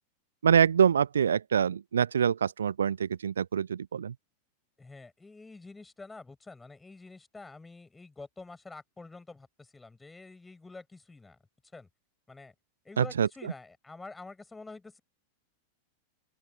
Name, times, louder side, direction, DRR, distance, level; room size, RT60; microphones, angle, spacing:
voice 1, 0.4-4.1 13.0-13.5, right 7 dB, 70° right, 0.8 m, -25 dB
voice 2, 4.8-11.4 11.7-11.9 12.3-12.5 12.8-15.0, left 3 dB, 10° left, 7.4 m, -47 dB
open air
figure-of-eight pair, 90°, 0 cm